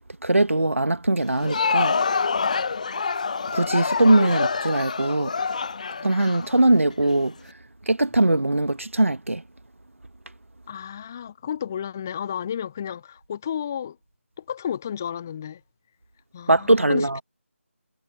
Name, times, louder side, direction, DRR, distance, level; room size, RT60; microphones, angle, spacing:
voice 1, 0.2-1.9 3.5-5.3 6.0-7.3 7.9-9.4 16.5-17.2, right 2 dB, 70° right, 1.5 m, -21 dB
Crowd, 1.2-7.1, left 5 dB, 30° left, 1.1 m, -26 dB
voice 2, 10.7-14.0 14.4-15.6 16.3-17.2, left 9 dB, 10° left, 0.4 m, -32 dB
figure-of-eight pair, 160°, 7 cm